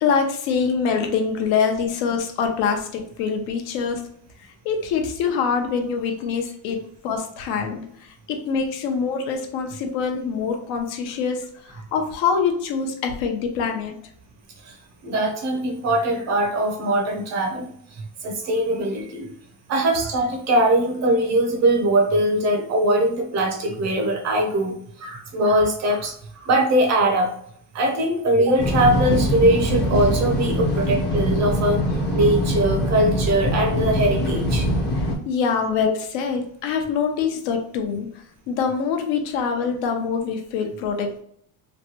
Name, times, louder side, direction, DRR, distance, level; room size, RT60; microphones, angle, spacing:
voice 1, 0.0-4.0 4.6-6.8 7.0-7.8 8.3-11.4 11.7-13.9 35.3-38.1 38.5-41.2, left 6 dB, 65° left, 4 dB, 0.7 m, -24 dB
voice 2, 15.0-19.3 19.7-27.3 27.7-31.8 32.1-34.7, right 1 dB, 35° right, 2 dB, 0.6 m, -21 dB
sound 1, 28.6-35.1, equal, 25° left, 0.6 m, -23 dB
3.2 x 2.2 x 2.8 m, 0.66 s
cardioid pair, 140°, 47 cm